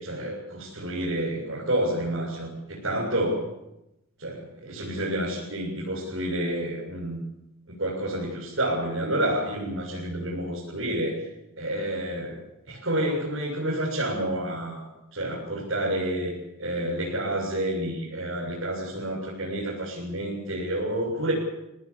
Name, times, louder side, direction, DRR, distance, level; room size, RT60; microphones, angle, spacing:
voice 1, 0.0-3.4 4.2-7.2 7.7-11.2 11.6-12.4 12.7-14.9 15.1-21.3, right 1 dB, 65° right, -5 dB, 7.3 m, -29 dB
25.5 x 18.5 x 8.8 m, 0.90 s
head